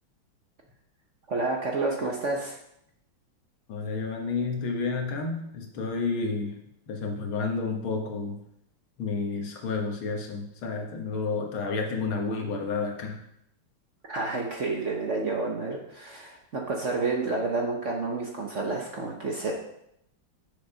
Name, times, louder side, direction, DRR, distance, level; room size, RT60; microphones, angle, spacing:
voice 1, 1.3-2.6 14.1-19.5, right 3 dB, 45° right, 0 dB, 1.0 m, -29 dB
voice 2, 3.7-8.4 9.0-13.2, left 4 dB, 75° left, 2 dB, 2.1 m, -31 dB
6.9 x 6.6 x 5.5 m, 0.77 s
omnidirectional pair, 2.3 m